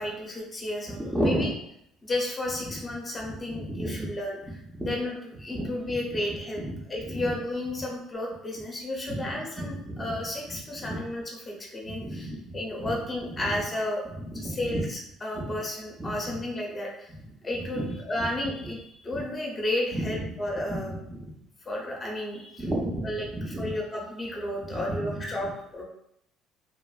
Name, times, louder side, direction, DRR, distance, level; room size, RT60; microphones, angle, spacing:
voice 1, 0.0-1.5 2.0-4.4 4.8-6.6 6.9-14.0 14.3-17.1 17.4-20.9 21.6-22.6 23.0-25.8, left 1 dB, 20° left, -1 dB, 0.7 m, -32 dB
voice 2, 0.9-1.5 2.6-2.7 3.2-4.1 4.8-4.9 5.5-5.9 6.6-7.3 9.1-9.3 9.6-10.2 10.5-11.0 11.9-13.0 13.4-13.5 14.2-14.8 15.3-15.6 16.0-16.3 17.7-18.3 19.1-19.2 19.9-20.2 20.7-21.3 22.6-23.7 24.6-25.1 25.4-25.5, right 1 dB, 20° right, -8 dB, 0.7 m, -33 dB
2.9 x 2.5 x 2.4 m, 0.77 s
cardioid pair, 105°, 0 cm